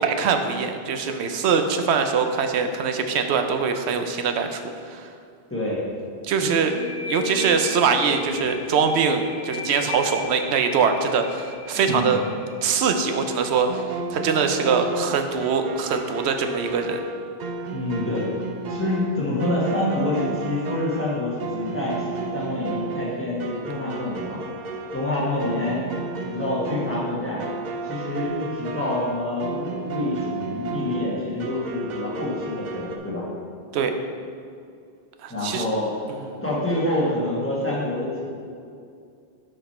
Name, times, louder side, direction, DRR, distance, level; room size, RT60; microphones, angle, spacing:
voice 1, 0.0-4.6 4.9-5.1 6.2-6.7 7.1-12.2 12.6-17.0 33.7-33.9 35.2-35.6 36.3-36.4, right 5 dB, 80° right, 6 dB, 0.9 m, -23 dB
voice 2, 5.5-5.8 6.4-6.5 11.7-12.2 17.7-18.3 18.7-24.4 24.9-25.8 26.2-27.4 27.8-33.3 35.3-35.9 36.4-38.2, left 1 dB, 10° left, -7 dB, 1.4 m, -27 dB
sound 1, 6.6-14.0, left 4 dB, 55° left, 0.5 m, -36 dB
sound 2, 13.7-33.0, right 4 dB, 55° right, 0.6 m, -33 dB
5.9 x 5.2 x 4.3 m, 2.4 s
omnidirectional pair, 1.1 m